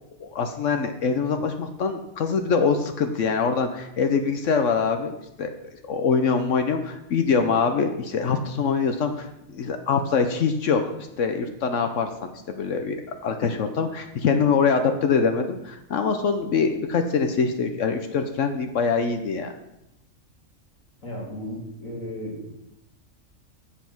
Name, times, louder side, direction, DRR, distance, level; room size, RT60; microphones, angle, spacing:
voice 1, 0.0-5.1 5.4-5.5 5.8-19.5, left 5 dB, 70° left, 6 dB, 1.1 m, -24 dB
voice 2, 21.0-22.6, equal, 85° left, -3 dB, 3.3 m, -35 dB
7.6 x 7.1 x 6.0 m, 0.86 s
omnidirectional pair, 1.4 m